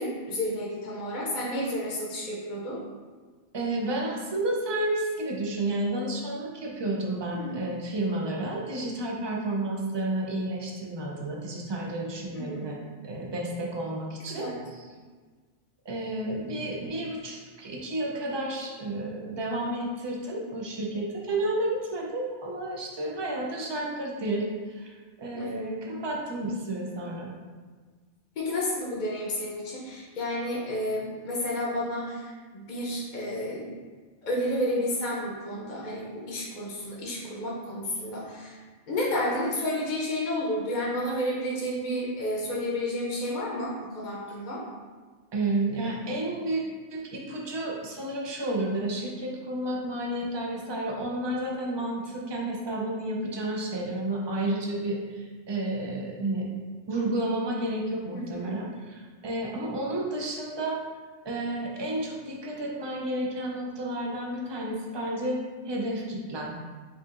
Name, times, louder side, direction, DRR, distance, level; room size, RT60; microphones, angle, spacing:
voice 1, 0.0-2.8 7.3-7.6 12.3-12.7 14.3-14.5 25.3-25.8 28.4-33.7 34.2-38.6 38.9-44.6 58.1-58.5, left 1 dB, 50° left, -5 dB, 0.8 m, -31 dB
voice 2, 3.5-14.9 15.9-24.9 25.2-27.3 45.3-46.6 46.9-56.5 56.9-60.8 61.2-65.4 65.6-66.6, right 1 dB, 40° right, -2 dB, 0.4 m, -31 dB
4.8 x 2.8 x 2.4 m, 1.4 s
omnidirectional pair, 1.1 m